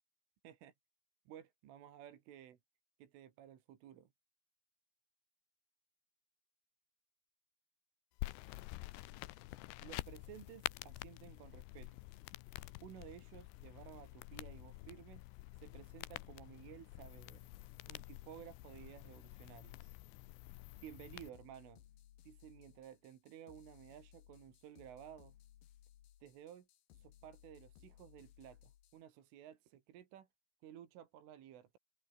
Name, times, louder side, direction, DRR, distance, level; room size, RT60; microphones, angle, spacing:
voice 1, 1.3-2.6 3.0-4.1 9.8-12.0 12.8-15.2 15.5-17.5 17.9-19.9 20.8-21.8 22.2-25.4 26.2-26.7 26.9-30.3 30.6-31.8, right 10 dB, 75° right, 4.8 m, -55 dB
sound 1, 8.2-21.3, left 19 dB, 85° left, 2.6 m, -48 dB
sound 2, 21.3-29.0, left 12 dB, 65° left, 2.5 m, -63 dB
omnidirectional pair, 5.9 m